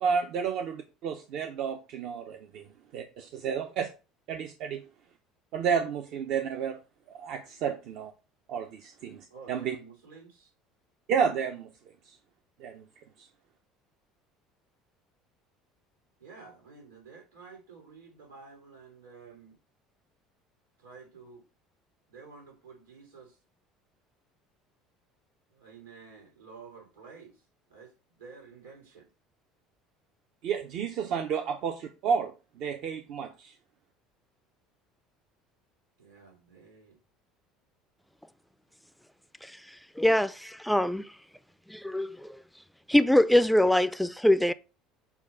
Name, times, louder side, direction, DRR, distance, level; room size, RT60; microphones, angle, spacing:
voice 1, 0.0-2.6 2.9-3.9 4.3-4.8 5.5-6.8 7.1-8.1 8.5-9.8 11.1-11.7 12.1-12.2 12.6-12.8 30.4-33.5, right 6 dB, 60° right, 0.7 m, -31 dB
voice 2, 9.3-10.5 16.2-19.6 20.8-21.4 22.1-23.4 25.5-27.4 27.7-29.1 36.0-37.0, right 5 dB, 85° right, 2.7 m, -51 dB
voice 3, 40.0-41.1 41.7-42.3 42.9-44.5, left 1 dB, ahead, 0.4 m, -23 dB
7.1 x 2.4 x 5.4 m
hypercardioid pair, 70°, 0 cm